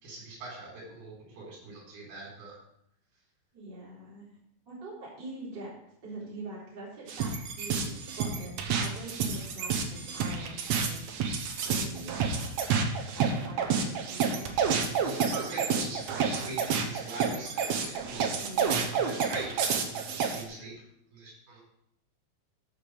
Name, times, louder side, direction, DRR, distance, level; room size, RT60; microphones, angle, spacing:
voice 1, 0.0-2.6 15.0-20.8 21.1-21.6, right 2 dB, 85° right, -3 dB, 6.0 m, -42 dB
voice 2, 3.5-4.3 4.7-5.7 6.0-11.0 11.6-12.4 13.1-14.6 18.4-19.2, right 1 dB, 30° right, -6 dB, 4.0 m, -43 dB
sound 1, 7.1-20.4, right 6 dB, 65° right, 1.9 m, -29 dB
13.5 x 5.7 x 4.9 m, 0.75 s
omnidirectional pair, 4.4 m